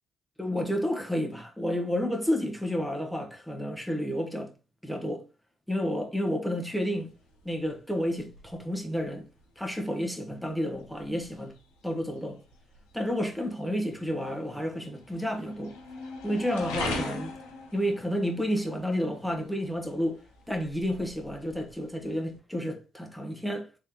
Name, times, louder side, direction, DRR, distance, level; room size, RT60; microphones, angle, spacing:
voice 1, 0.4-4.5 4.8-5.2 5.7-7.1 7.4-9.2 9.6-11.5 11.8-12.4 12.9-15.7 16.2-17.3 17.7-20.2 20.5-23.7, equal, ahead, 1.3 m, -30 dB
sound 1, 6.9-22.4, left 2 dB, 90° left, 1.0 m, -43 dB
3.7 x 3.2 x 2.9 m
supercardioid pair, 60°, 0 cm